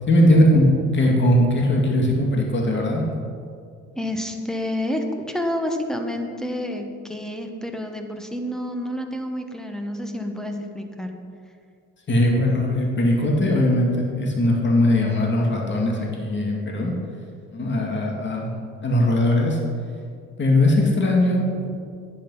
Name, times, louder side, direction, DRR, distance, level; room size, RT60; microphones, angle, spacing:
voice 1, 0.1-3.0 12.1-16.9 17.5-18.6 18.8-19.6 20.4-21.7, left 1 dB, 40° left, -1 dB, 2.2 m, -20 dB
voice 2, 1.1-1.5 1.8-2.1 3.9-11.1, left 1 dB, ahead, 4 dB, 1.4 m, -29 dB
10.5 x 9.1 x 5.6 m, 2.3 s
cardioid pair, 90°, 30 cm